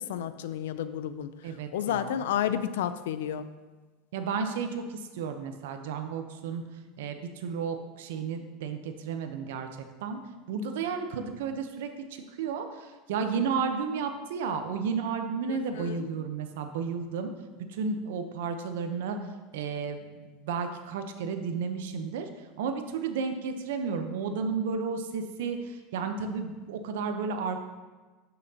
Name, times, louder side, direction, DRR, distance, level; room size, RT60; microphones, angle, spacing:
voice 1, 0.0-1.3 1.7-3.5 15.5-16.1, left 10 dB, 90° left, 12 dB, 0.4 m, -31 dB
voice 2, 1.4-2.2 4.1-6.6 7.0-9.7 10.0-10.2 10.5-17.3 17.7-19.2 19.5-22.3 22.6-27.6, right 5 dB, 80° right, 7 dB, 0.8 m, -32 dB
10.5 x 5.7 x 2.8 m, 1.3 s
supercardioid pair, 165°, 0 cm